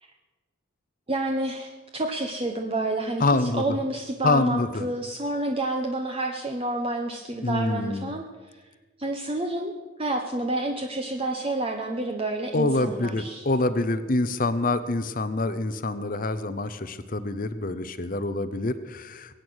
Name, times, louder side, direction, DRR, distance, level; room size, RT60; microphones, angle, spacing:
voice 1, 1.1-8.2 9.0-9.7 10.0-13.5, right 2 dB, 25° right, 3 dB, 0.9 m, -29 dB
voice 2, 3.2-3.6 4.2-4.9 7.4-8.2 12.5-19.3, left 2 dB, 40° left, 12 dB, 0.7 m, -26 dB
22.5 x 9.0 x 6.3 m, 1.3 s
head